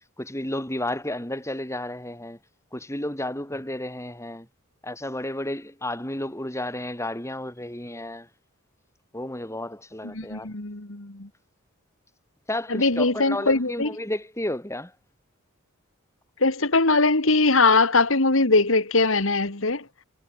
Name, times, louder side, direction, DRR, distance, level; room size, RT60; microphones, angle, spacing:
voice 1, 0.2-2.4 2.7-4.5 4.8-8.3 9.1-10.5 12.5-14.9, left 1 dB, 15° left, 5.9 m, -32 dB
voice 2, 10.1-11.3 12.7-13.9 16.4-19.8, left 3 dB, 65° left, 2.4 m, -21 dB
head